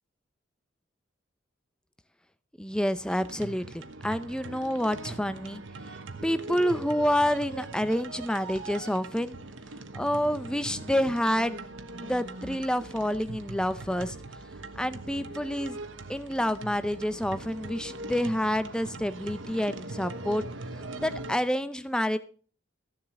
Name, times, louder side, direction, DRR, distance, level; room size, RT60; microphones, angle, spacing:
voice 1, 2.6-5.6 6.2-9.3 9.9-11.7 12.0-14.2 14.8-15.8 16.1-20.4 21.0-22.2, equal, 5° left, 12 dB, 0.6 m, -28 dB
sound 1, 3.1-21.4, right 2 dB, 75° right, 1.2 m, -41 dB
14.5 x 7.5 x 6.3 m, 0.42 s
head